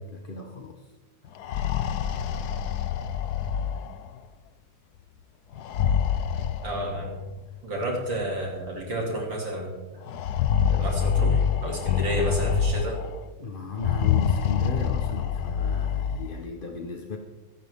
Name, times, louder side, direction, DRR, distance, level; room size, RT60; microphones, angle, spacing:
voice 1, 0.1-0.8 13.4-17.2, left 4 dB, 40° left, 2 dB, 0.8 m, -35 dB
sound 1, 1.3-4.2 5.5-7.2 8.2-8.3 8.7-8.8 10.1-13.2 13.7-16.3, left 8 dB, 65° left, 1.0 m, -26 dB
voice 2, 6.6-7.2 7.6-10.0 10.7-13.0, equal, 60° right, -1 dB, 3.4 m, -31 dB
25.0 x 10.5 x 3.6 m, 1.2 s
omnidirectional pair, 2.4 m